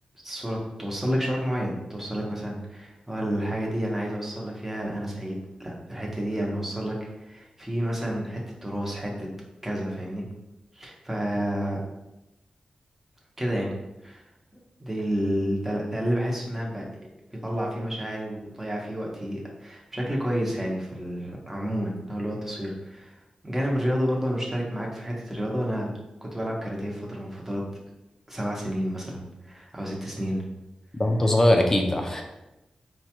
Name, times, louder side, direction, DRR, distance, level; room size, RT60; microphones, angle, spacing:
voice 1, 0.2-9.3 9.6-10.2 10.7-11.8 13.4-13.7 14.0-14.2 14.8-16.9 17.4-25.9 26.2-27.8 28.3-30.4, equal, 10° right, -2 dB, 0.9 m, -30 dB
voice 2, 30.9-32.2, left 1 dB, 20° left, 3 dB, 0.5 m, -21 dB
4.5 x 2.3 x 2.9 m, 0.94 s
wide cardioid pair, 85°, 2 cm